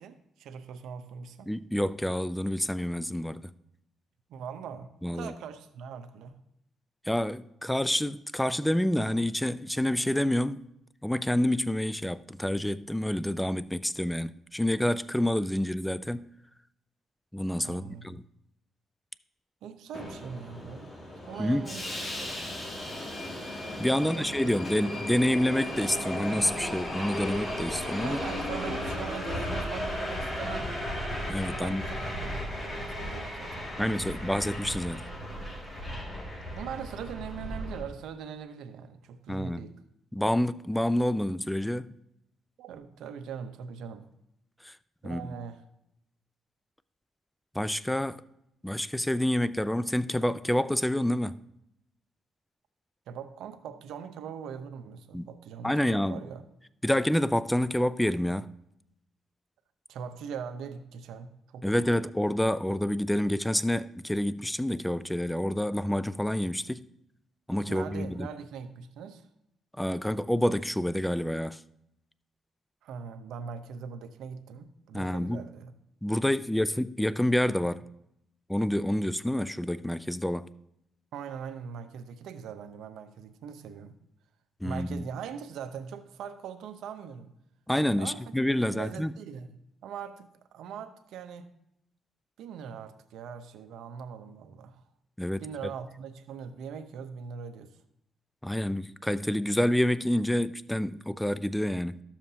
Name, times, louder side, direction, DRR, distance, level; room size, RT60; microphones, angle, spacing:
voice 1, 0.0-1.5 4.3-6.4 17.6-18.2 19.6-20.9 21.2-21.9 22.2-22.3 23.9-24.6 28.0-30.7 31.5-34.2 36.5-39.8 42.6-44.1 45.0-45.6 53.1-56.4 59.9-62.0 67.7-69.3 72.8-75.7 81.1-83.9 84.6-87.3 87.9-88.4 88.7-89.5 89.8-91.5 92.4-94.8 95.4-97.7, right 7 dB, 80° right, 0.7 m, -41 dB
voice 2, 1.5-3.5 5.0-5.3 7.1-10.6 11.0-16.3 17.3-18.2 21.4-21.7 23.8-28.2 31.3-31.8 33.8-35.0 39.3-39.7 40.1-41.9 44.6-44.8 45.0-45.3 47.5-48.2 48.6-51.4 55.1-55.3 55.6-56.2 56.8-58.5 61.6-66.8 67.5-68.3 69.8-71.6 74.9-75.5 76.0-77.8 78.5-80.5 84.6-85.1 87.7-89.1 95.2-95.4 98.4-102.0, left 1 dB, 5° left, 0.3 m, -28 dB
Subway metro underground, 19.9-37.8, left 1 dB, 30° left, 2.1 m, -35 dB
12.5 x 7.2 x 2.8 m
cardioid pair, 90°, 0 cm